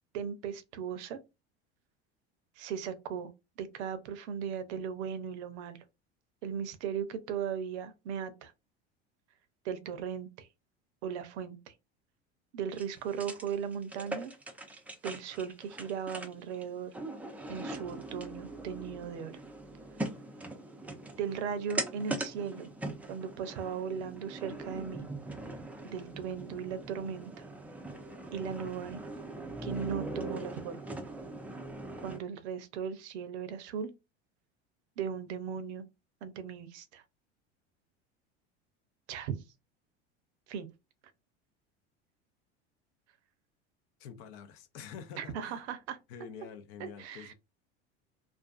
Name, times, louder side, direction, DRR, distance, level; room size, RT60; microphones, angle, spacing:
voice 1, 0.1-1.2 2.6-3.3 3.6-5.8 6.4-8.5 9.6-10.5 11.0-11.7 12.5-14.3 15.0-16.9 17.5-19.4 21.2-22.7 23.1-25.1 25.8-27.4 28.3-29.0 29.6-30.8 32.0-33.9 35.0-35.9 36.2-37.0 39.1-39.4 40.5-40.7 45.2-46.0 46.8-47.3, right 7 dB, 75° right, 0.6 m, -37 dB
sound 1, 12.7-32.2, right 2 dB, 5° right, 0.3 m, -41 dB
voice 2, 44.0-45.6 46.1-47.3, left 7 dB, 65° left, 0.6 m, -47 dB
2.4 x 2.3 x 2.3 m
hypercardioid pair, 90°, 34 cm